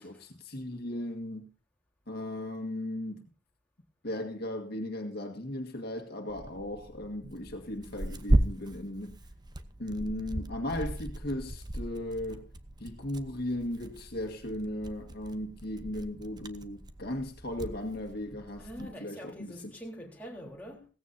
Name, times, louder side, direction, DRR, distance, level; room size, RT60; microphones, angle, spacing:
voice 1, 0.0-1.5 2.1-3.3 4.0-9.2 9.8-12.5 12.8-19.7, left 1 dB, 55° left, 1.9 m, -37 dB
Tearing, 6.3-18.9, right 1 dB, 20° right, 0.9 m, -36 dB
voice 2, 18.6-20.9, equal, 10° left, 3.8 m, -44 dB
17.0 x 15.5 x 2.7 m
head